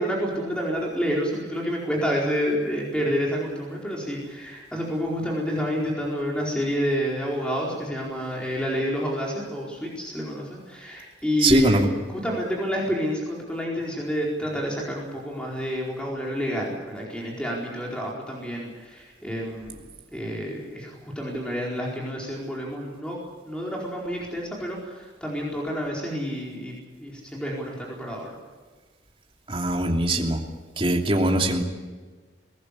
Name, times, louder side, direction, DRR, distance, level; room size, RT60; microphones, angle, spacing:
voice 1, 0.0-19.8 20.1-23.2 23.5-28.3, equal, 5° left, -3 dB, 4.5 m, -29 dB
voice 2, 11.4-11.9 29.5-30.4 30.8-31.6, right 1 dB, 30° right, 1 dB, 2.9 m, -21 dB
22.5 x 19.0 x 8.5 m, 1.4 s
head